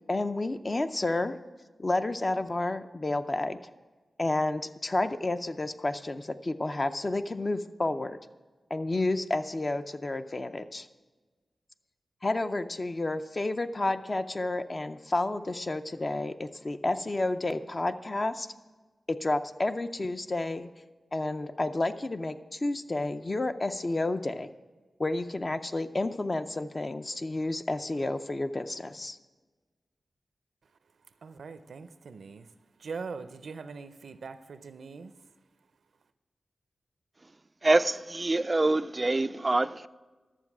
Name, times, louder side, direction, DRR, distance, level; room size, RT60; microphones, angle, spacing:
voice 1, 0.1-1.4 1.8-3.6 4.2-8.2 8.7-10.9 12.2-18.5 19.1-20.7 21.1-24.5 25.0-29.2, left 2 dB, 35° left, 0.5 m, -30 dB
voice 2, 31.2-32.5 32.8-35.1, right 5 dB, 85° right, 0.5 m, -42 dB
voice 3, 37.6-39.9, right 2 dB, 30° right, 0.3 m, -25 dB
12.0 x 7.4 x 6.0 m
wide cardioid pair, 95°, 0 cm